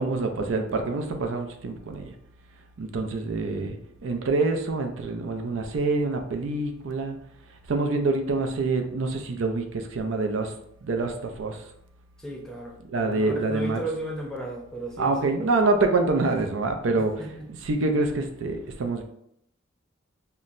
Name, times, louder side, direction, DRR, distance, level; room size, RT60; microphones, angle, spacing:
voice 1, 0.0-2.1 2.8-7.2 7.7-10.5 10.8-11.6 12.9-13.8 15.0-17.1 17.6-19.0, right 3 dB, 75° right, 5 dB, 0.5 m, -26 dB
voice 2, 12.2-15.5 17.2-17.5, right 1 dB, 5° left, -2 dB, 0.6 m, -35 dB
5.6 x 2.1 x 2.5 m, 0.74 s
head